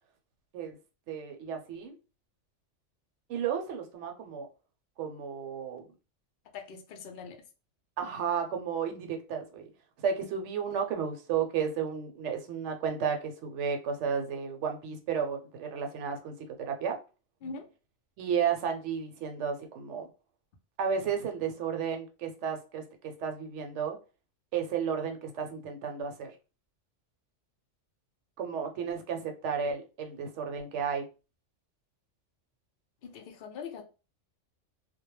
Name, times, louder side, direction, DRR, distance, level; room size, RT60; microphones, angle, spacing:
voice 1, 1.1-2.0 3.3-4.5 5.0-5.8 8.0-9.7 10.0-17.0 18.2-20.1 20.8-24.0 24.5-26.3 28.4-31.1, right 7 dB, 75° right, 0.9 m, -33 dB
voice 2, 6.5-7.4 17.4-17.7 33.0-33.8, left 5 dB, 60° left, 0.7 m, -42 dB
2.2 x 2.0 x 3.0 m
omnidirectional pair, 1.3 m